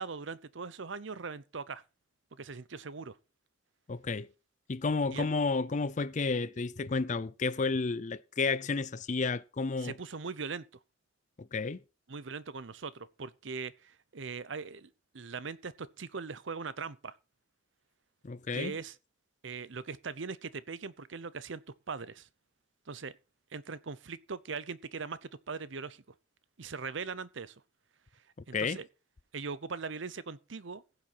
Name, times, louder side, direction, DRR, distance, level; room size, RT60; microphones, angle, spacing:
voice 1, 0.0-1.8 2.3-3.2 5.1-5.3 9.8-10.6 12.1-17.1 18.5-18.9 19.4-21.6 21.9-22.3 22.9-23.1 23.5-26.0 26.6-27.5 28.5-28.9 29.3-30.8, right 5 dB, 75° right, 0.8 m, -40 dB
voice 2, 3.9-4.3 4.7-9.9 11.4-11.8 18.2-18.7 28.5-28.8, left 4 dB, 40° left, 0.5 m, -31 dB
16.0 x 7.5 x 4.2 m
head